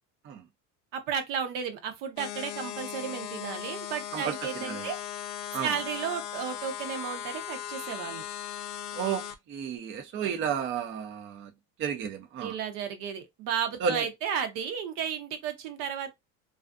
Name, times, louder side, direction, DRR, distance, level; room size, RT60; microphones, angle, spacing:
voice 1, 0.9-5.0 5.6-8.2 12.4-16.1, right 7 dB, 70° right, 0.8 m, -33 dB
sound 1, 2.2-9.4, left 10 dB, 80° left, 0.5 m, -38 dB
voice 2, 4.1-4.9 5.5-5.8 8.9-11.5 11.8-12.6 13.8-14.1, right 7 dB, 35° right, 0.5 m, -32 dB
2.4 x 2.4 x 2.4 m
supercardioid pair, 115°, 36 cm